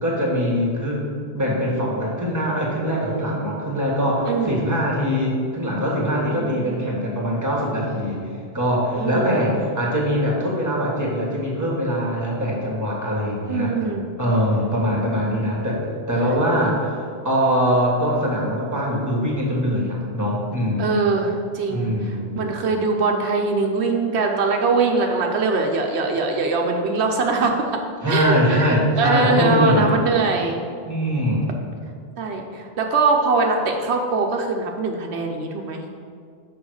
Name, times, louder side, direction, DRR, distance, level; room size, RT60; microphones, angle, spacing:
voice 1, 0.0-1.0 1.3-8.3 8.5-13.7 14.2-15.8 16.1-17.0 17.2-20.9 21.7-22.4 28.0-30.0 30.9-31.5, equal, 15° right, -3 dB, 1.7 m, -22 dB
voice 2, 4.3-4.7 6.3-6.9 8.9-9.6 13.5-14.1 15.2-15.6 20.8-27.8 28.1-30.6 32.2-35.8, right 3 dB, 90° right, 3 dB, 1.0 m, -22 dB
6.2 x 5.1 x 6.4 m, 2.1 s
omnidirectional pair, 1.1 m